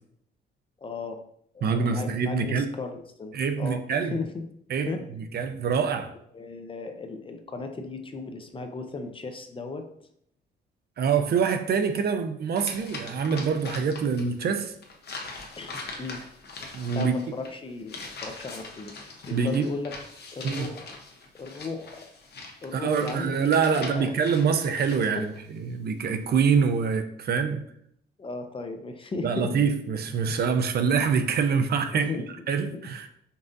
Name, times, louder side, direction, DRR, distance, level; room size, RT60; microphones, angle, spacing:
voice 1, 0.8-1.2 1.5-3.8 4.1-4.4 4.9-5.0 6.3-9.9 15.6-16.2 16.9-19.9 20.3-20.9 21.4-22.1 22.6-23.4 23.7-24.2 25.2-25.3 28.2-29.5 31.9-32.3 32.7-32.9, left 3 dB, 25° left, 6 dB, 0.5 m, -36 dB
voice 2, 1.6-2.7 3.3-4.1 4.7-6.1 11.0-14.7 16.7-17.1 19.3-19.6 20.4-20.7 22.7-27.6 29.2-32.1 32.5-33.1, right 6 dB, 55° right, 7 dB, 0.5 m, -25 dB
sound 1, 12.6-14.3 14.6-25.4, left 3 dB, 55° left, 0.9 m, -42 dB
5.4 x 2.5 x 2.5 m, 0.69 s
cardioid pair, 90°, 20 cm